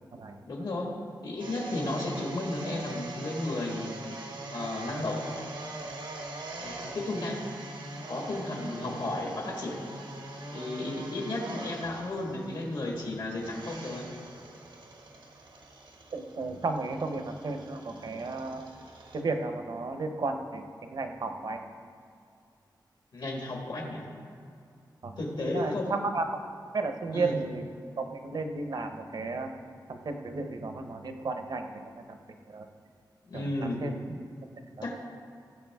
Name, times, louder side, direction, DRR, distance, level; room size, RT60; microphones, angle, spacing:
voice 1, 0.5-0.9 1.2-4.0 4.5-5.2 6.6-7.4 8.1-9.8 10.5-14.1 23.1-24.0 25.2-25.9 27.1-27.3 33.3-33.8 34.8-34.9, left 2 dB, 75° left, -1 dB, 1.8 m, -33 dB
sound 1, 1.4-19.2, right 2 dB, 85° right, 1.3 m, -43 dB
voice 2, 16.1-18.7 19.1-21.7 25.0-26.4 26.7-27.7 28.0-29.5 29.9-32.2 32.5-32.7 33.3-34.2 34.8-34.9, right 3 dB, 60° right, 6 dB, 0.8 m, -34 dB
17.0 x 7.5 x 3.6 m, 2.4 s
wide cardioid pair, 150°, 8 cm